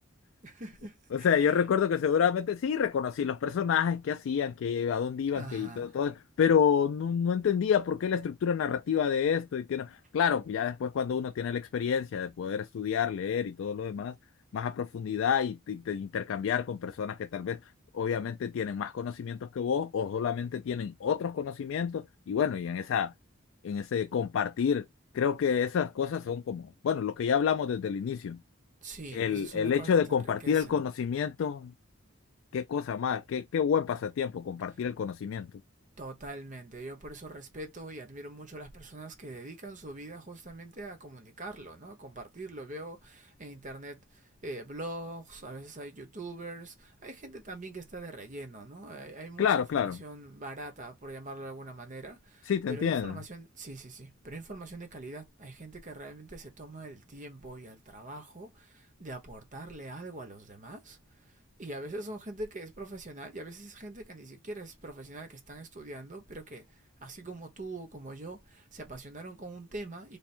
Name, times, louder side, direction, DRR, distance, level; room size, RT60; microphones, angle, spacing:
voice 1, 0.4-1.6 5.3-5.9 28.8-30.8 36.0-70.2, right 2 dB, 40° right, 1.0 m, -43 dB
voice 2, 1.1-14.1 14.5-17.6 17.9-23.1 23.6-24.8 25.1-28.4 29.1-31.7 32.5-35.5 49.4-50.0 52.5-53.2, left 7 dB, 65° left, 0.3 m, -29 dB
3.5 x 2.1 x 4.3 m
head